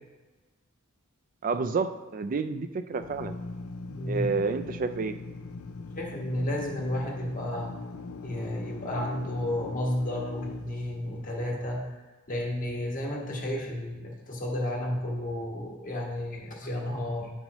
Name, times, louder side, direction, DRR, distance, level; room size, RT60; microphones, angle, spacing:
voice 1, 1.4-3.4 4.1-5.1, right 4 dB, 40° right, 10 dB, 0.4 m, -29 dB
Drill, 2.9-11.5, left 3 dB, 80° left, 0.4 m, -41 dB
voice 2, 3.9-4.3 6.0-7.7 8.2-11.9 12.3-17.3, left 1 dB, 40° left, -1 dB, 1.3 m, -32 dB
9.1 x 5.5 x 3.0 m, 1.2 s
head